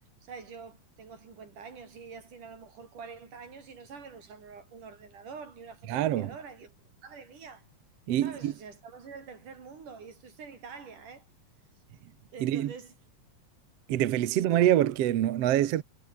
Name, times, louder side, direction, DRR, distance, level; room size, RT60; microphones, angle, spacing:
voice 1, 0.2-6.8 7.0-7.7 8.2-11.3 12.3-12.9, right 5 dB, 90° right, 6.0 m, -46 dB
voice 2, 5.9-6.3 8.1-8.5 12.4-12.7 13.9-15.8, right 12 dB, 60° right, 1.9 m, -25 dB
omnidirectional pair, 3.5 m